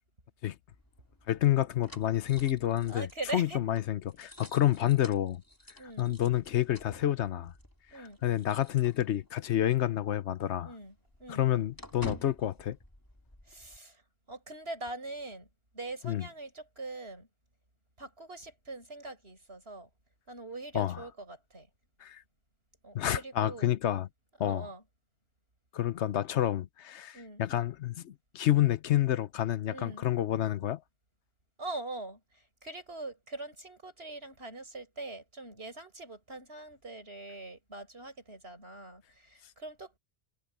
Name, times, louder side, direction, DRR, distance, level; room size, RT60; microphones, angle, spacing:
sound 1, 0.7-9.5 9.8-10.0 10.3-13.8, left 1 dB, 20° left, 3.1 m, -51 dB
voice 1, 1.3-3.1 3.3-5.4 6.0-7.5 8.0-10.7 11.3-12.8 16.0-16.2 20.7-21.0 22.0-22.2 22.9-24.1 24.4-24.7 25.7-30.8, left 12 dB, 85° left, 1.1 m, -29 dB
voice 2, 2.9-3.6 5.8-6.2 7.9-8.2 10.6-11.5 13.5-14.0 14.3-15.5 15.7-17.3 18.0-19.9 20.3-21.7 22.8-23.7 24.4-24.8 27.1-27.4 29.7-30.0 31.6-32.2 32.6-40.0, right 2 dB, 65° right, 6.9 m, -42 dB
omnidirectional pair, 1.1 m